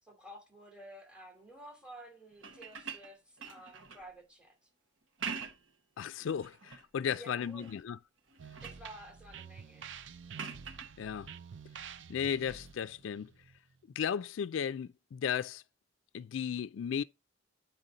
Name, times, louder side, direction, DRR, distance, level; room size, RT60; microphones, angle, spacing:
voice 1, 0.0-4.7 7.1-7.7 8.6-9.9, right 1 dB, 5° right, 2.6 m, -52 dB
sound 1, 2.3-4.1 5.0-5.8 6.2-6.9 7.4-7.9 8.2-8.9 10.3-10.9 12.7-12.8, right 6 dB, 85° right, 1.3 m, -44 dB
voice 2, 6.0-8.0 11.0-11.3 12.1-13.3 14.0-15.6 16.1-17.0, left 8 dB, 85° left, 0.3 m, -35 dB
sound 2, 8.4-14.0, right 7 dB, 70° right, 0.5 m, -49 dB
8.9 x 4.4 x 3.9 m
head